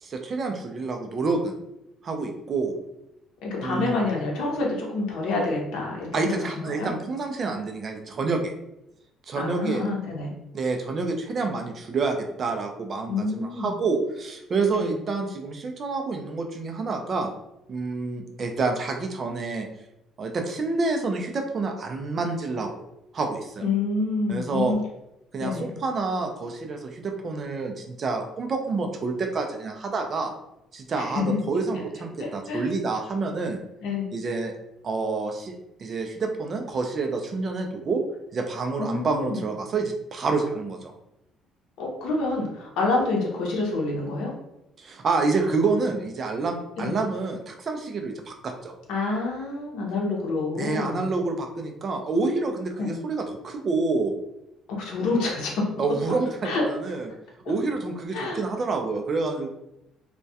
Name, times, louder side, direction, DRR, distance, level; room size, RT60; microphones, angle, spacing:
voice 1, 0.0-1.5 2.0-2.8 3.6-4.0 6.1-8.5 9.3-9.8 10.5-17.3 17.7-19.7 20.2-22.7 23.1-23.6 24.3-24.8 25.3-30.3 30.7-33.6 34.1-34.5 34.8-38.0 38.3-40.9 44.8-48.7 50.6-54.1 55.8-57.1 57.5-59.5, right 3 dB, 35° right, 4 dB, 0.4 m, -28 dB
voice 2, 3.4-6.9 9.4-10.3 13.1-13.7 14.7-14.9 23.6-24.8 25.4-25.7 30.9-31.4 32.2-32.7 33.8-34.1 38.8-39.4 41.8-44.3 46.8-46.9 48.9-51.1 52.8-52.9 54.7-55.7 56.4-56.7 58.1-58.4, left 3 dB, 80° left, -2 dB, 0.6 m, -27 dB
2.2 x 2.1 x 2.7 m, 0.84 s
cardioid pair, 140°, 0 cm